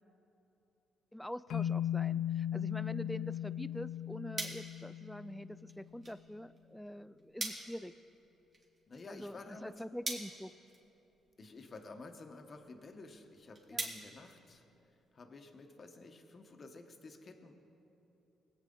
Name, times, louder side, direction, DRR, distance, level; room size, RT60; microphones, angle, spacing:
voice 1, 1.1-7.9 9.1-10.5 13.7-13.9, equal, 5° left, 15 dB, 0.3 m, -45 dB
sound 1, 1.5-5.8, left 10 dB, 80° left, 0.4 m, -37 dB
sound 2, 3.8-15.1, right 2 dB, 40° right, 2.2 m, -47 dB
voice 2, 8.9-9.7 11.4-14.6 15.1-17.5, left 3 dB, 40° left, 5 dB, 1.1 m, -51 dB
20.0 x 8.2 x 3.8 m, 3.0 s
cardioid pair, 90°, 0 cm